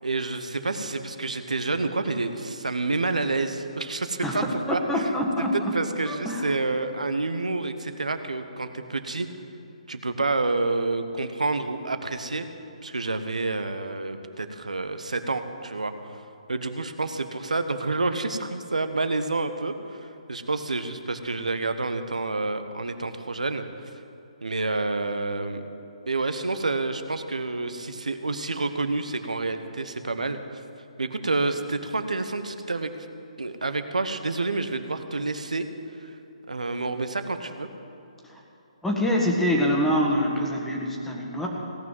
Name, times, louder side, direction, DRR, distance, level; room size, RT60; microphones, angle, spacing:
voice 1, 0.0-5.1 5.4-9.3 9.9-12.5 12.8-16.2 16.5-23.6 24.4-25.6 26.0-30.6 31.0-32.9 33.4-35.7 36.0-36.1 36.5-37.7, right 3 dB, 85° right, 9 dB, 1.0 m, -28 dB
voice 2, 4.2-5.7 6.1-6.5 38.2-38.4 38.8-41.5, equal, 5° left, -1 dB, 1.7 m, -25 dB
17.0 x 5.9 x 9.2 m, 2.8 s
figure-of-eight pair, 140°, 4 cm